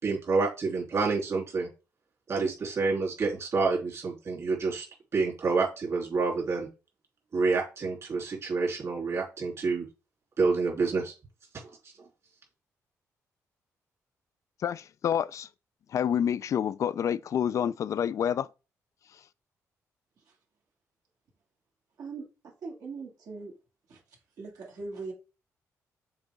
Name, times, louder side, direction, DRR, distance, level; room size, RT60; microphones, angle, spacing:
voice 1, 0.0-1.7 2.3-4.9 5.1-6.7 7.3-9.8 10.4-11.1, right 4 dB, 50° right, 3.3 m, -28 dB
voice 2, 14.6-15.5 15.9-18.5, left 9 dB, 60° left, 0.3 m, -28 dB
voice 3, 22.0-23.5 23.9-24.0 24.4-25.1, right 4 dB, 75° right, 2.7 m, -40 dB
6.8 x 4.0 x 3.6 m
cardioid pair, 95°, 6 cm